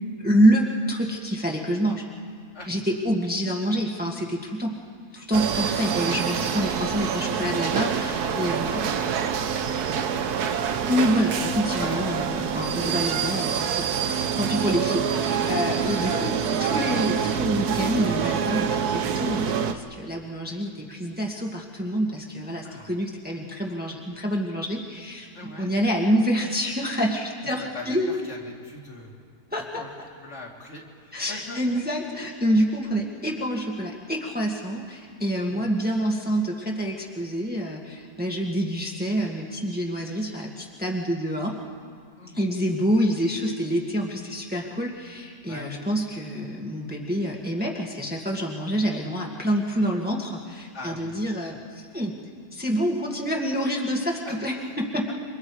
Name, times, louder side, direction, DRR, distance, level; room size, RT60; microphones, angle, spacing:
voice 1, 0.2-2.0 2.7-4.7 5.1-8.9 10.9-13.9 14.2-16.3 16.6-28.1 29.5-29.8 31.1-41.6 42.3-52.1 52.5-55.1, equal, 5° right, -1 dB, 1.7 m, -27 dB
sound 1, 5.3-19.7, right 7 dB, 85° right, 1.5 m, -26 dB
voice 2, 7.9-9.3 9.6-11.4 11.8-12.5 14.0-14.2 15.8-16.3 22.6-22.9 25.3-25.7 27.7-29.2 29.6-29.9 30.2-31.8 35.5-35.6 42.2-42.5 45.5-45.8 50.7-51.2 54.3-54.8, left 2 dB, 50° left, -2 dB, 2.8 m, -41 dB
28.0 x 24.5 x 4.8 m, 2.1 s
omnidirectional pair, 1.6 m